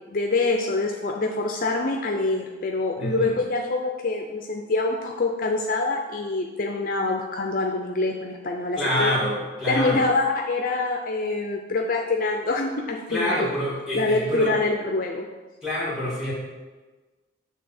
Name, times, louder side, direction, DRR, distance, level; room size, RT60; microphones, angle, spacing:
voice 1, 0.1-9.2 9.7-13.5 13.9-15.3, left 3 dB, 45° left, 1 dB, 0.5 m, -25 dB
voice 2, 3.0-3.4 8.8-10.1 13.1-14.5 15.6-16.3, left 1 dB, 5° right, -6 dB, 2.2 m, -26 dB
7.5 x 3.3 x 5.9 m, 1.3 s
head